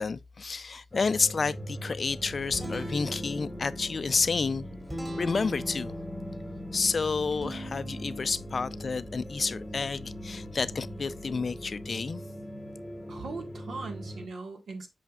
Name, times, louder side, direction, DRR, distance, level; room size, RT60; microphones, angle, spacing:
voice 1, 0.0-4.6 5.2-5.9 6.7-12.2, left 4 dB, 45° left, 0.4 m, -30 dB
sound 1, 0.9-14.3, equal, 10° left, 0.9 m, -41 dB
Guitar, 2.1-11.8, equal, 20° right, 2.9 m, -42 dB
voice 2, 13.1-14.9, right 3 dB, 80° right, 1.6 m, -39 dB
8.4 x 5.7 x 2.4 m
wide cardioid pair, 120°, 0 cm